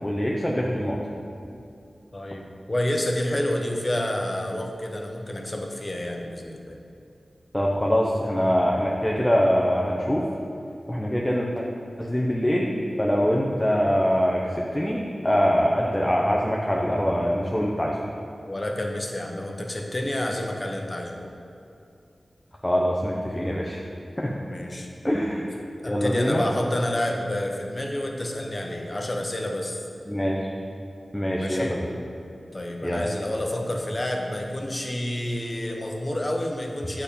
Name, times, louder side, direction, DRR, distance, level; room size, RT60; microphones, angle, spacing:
voice 1, 0.0-1.0 7.5-10.2 10.9-11.7 12.0-12.7 13.0-18.0 22.6-23.8 24.2-24.4 25.0-25.5 25.8-26.4 30.1-30.5 31.1-31.9 32.8-33.1, equal, 15° left, -3 dB, 0.9 m, -23 dB
voice 2, 2.1-6.8 18.5-21.3 24.4-24.9 25.8-29.8 31.3-31.7 32.5-37.0, left 1 dB, 35° left, 1 dB, 1.1 m, -29 dB
7.9 x 4.4 x 6.9 m, 2.6 s
wide cardioid pair, 55°, 0 cm